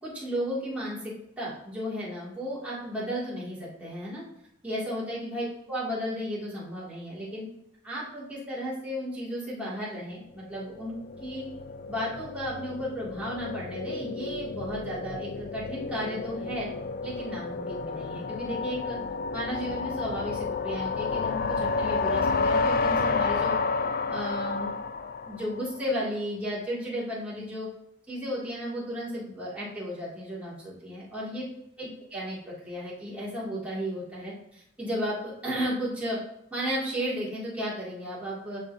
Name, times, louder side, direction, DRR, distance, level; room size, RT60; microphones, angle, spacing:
voice 1, 0.0-4.2 4.6-7.5 7.8-11.5 11.9-16.7 17.0-19.0 19.3-23.6 24.1-24.8 25.3-27.7 28.1-31.5 31.8-36.2 36.5-38.6, equal, 5° right, -8 dB, 2.4 m, -34 dB
sound 1, 10.6-25.8, left 4 dB, 45° left, 0.3 m, -30 dB
12.0 x 4.1 x 2.7 m, 0.77 s
head